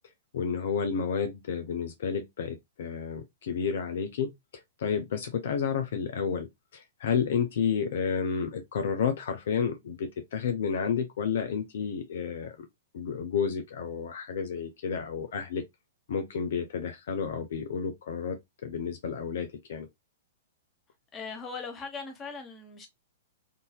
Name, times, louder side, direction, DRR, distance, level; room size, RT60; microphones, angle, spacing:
voice 1, 0.3-4.3 4.8-6.5 6.7-12.7 12.9-15.6 16.1-19.9, left 6 dB, 60° left, 0.6 m, -31 dB
voice 2, 21.1-22.9, left 4 dB, 20° left, 1.2 m, -39 dB
3.8 x 2.7 x 2.2 m
figure-of-eight pair, 110°, 0 cm